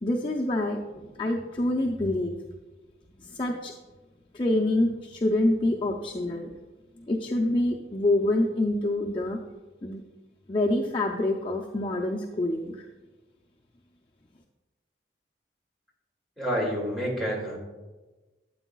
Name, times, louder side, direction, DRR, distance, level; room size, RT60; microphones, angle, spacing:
voice 1, 0.0-2.3 3.2-3.7 4.3-6.5 7.0-9.4 9.8-10.0 10.5-12.9, left 1 dB, 30° left, -1 dB, 0.5 m, -26 dB
voice 2, 16.4-17.6, equal, ahead, -5 dB, 2.2 m, -28 dB
13.0 x 8.1 x 2.3 m, 1.2 s
head